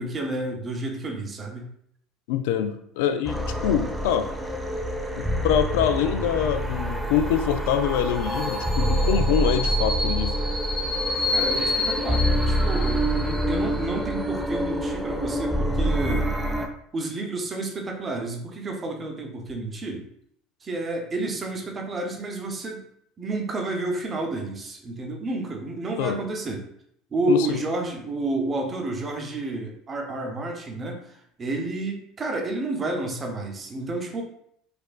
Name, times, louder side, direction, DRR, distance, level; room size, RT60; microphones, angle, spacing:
voice 1, 0.0-1.6 11.3-16.3 16.9-20.0 20.6-22.8 23.2-26.7 27.1-31.0 31.4-34.2, right 2 dB, 30° right, 2 dB, 0.8 m, -30 dB
voice 2, 2.3-4.3 5.2-10.4 26.0-26.2 27.3-27.6, left 9 dB, 80° left, 9 dB, 0.3 m, -25 dB
sound 1, 3.3-16.7, equal, 5° right, 0.5 m, -25 dB
4.3 x 2.4 x 2.4 m, 0.71 s
supercardioid pair, 90°, 0 cm